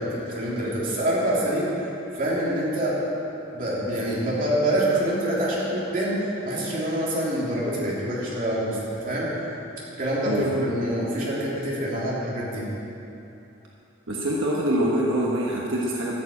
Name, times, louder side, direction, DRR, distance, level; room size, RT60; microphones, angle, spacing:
voice 1, 0.0-3.0 3.5-9.3 10.0-12.6, right 1 dB, 40° right, -7 dB, 3.2 m, -26 dB
voice 2, 10.2-10.6 14.1-16.2, right 1 dB, 75° right, -3 dB, 1.3 m, -25 dB
13.5 x 7.1 x 8.5 m, 2.9 s
head